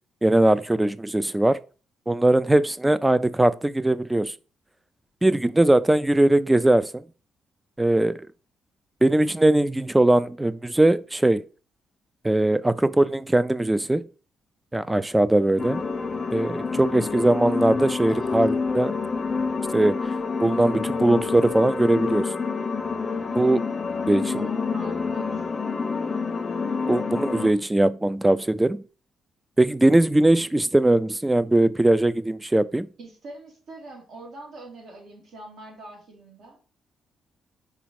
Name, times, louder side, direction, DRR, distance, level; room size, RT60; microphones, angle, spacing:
voice 1, 0.2-1.6 2.1-4.3 5.2-7.0 7.8-8.3 9.0-11.4 12.2-14.1 14.7-15.8 16.3-18.9 19.7-20.0 20.4-22.3 23.4-23.7 24.1-24.4 26.9-28.8 29.6-32.9, right 1 dB, 10° right, 0.4 m, -20 dB
sound 1, 15.6-27.5, left 4 dB, 30° left, 0.6 m, -28 dB
voice 2, 24.4-25.5 33.0-36.6, right 2 dB, 65° right, 2.5 m, -43 dB
5.0 x 4.2 x 4.6 m
cardioid pair, 105°, 0 cm